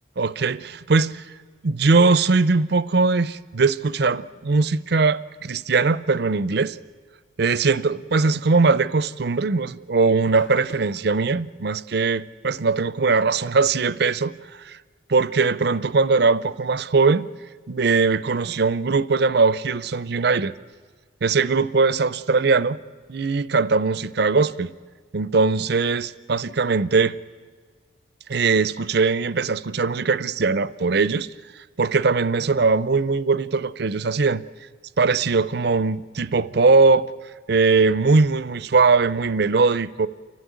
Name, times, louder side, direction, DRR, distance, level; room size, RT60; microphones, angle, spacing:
voice 1, 0.2-1.3 1.6-6.8 7.4-14.8 15.1-17.3 17.7-20.5 21.2-22.8 23.1-24.7 25.1-27.2 28.3-31.3 31.8-34.4 35.0-37.1 37.5-40.1, right 4 dB, 55° right, 0.5 m, -20 dB
sound 1, 10.3-11.1, equal, 85° left, 2.4 m, -44 dB
29.5 x 12.0 x 9.4 m
head